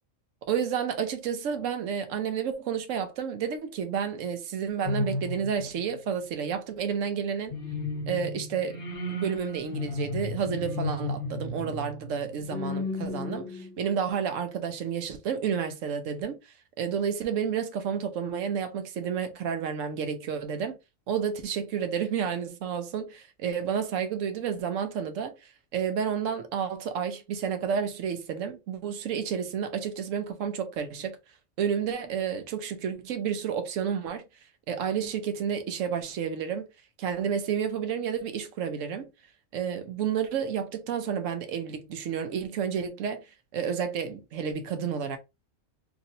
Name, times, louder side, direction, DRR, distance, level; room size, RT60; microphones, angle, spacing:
voice 1, 0.5-7.5 8.1-8.8 9.1-16.4 16.8-20.8 21.1-31.2 31.6-34.2 34.7-36.7 37.0-39.1 39.5-45.2, right 7 dB, 70° right, 1.0 m, -30 dB
sound 1, 4.8-5.9 7.5-14.0, left 2 dB, 50° left, 1.0 m, -34 dB
3.0 x 2.6 x 2.7 m
omnidirectional pair, 1.4 m